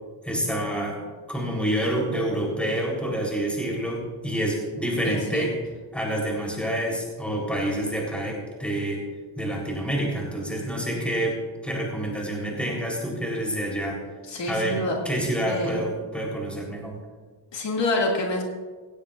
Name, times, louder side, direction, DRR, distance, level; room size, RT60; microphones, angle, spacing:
voice 1, 0.2-1.0 1.3-5.6 5.9-9.0 9.4-14.0 14.4-17.0, right 1 dB, 5° left, -2 dB, 3.9 m, -28 dB
voice 2, 5.0-5.5 14.3-15.0 15.5-15.8 17.5-18.4, left 2 dB, 75° left, -1 dB, 2.5 m, -27 dB
17.0 x 16.0 x 2.6 m, 1.4 s
wide cardioid pair, 135°, 44 cm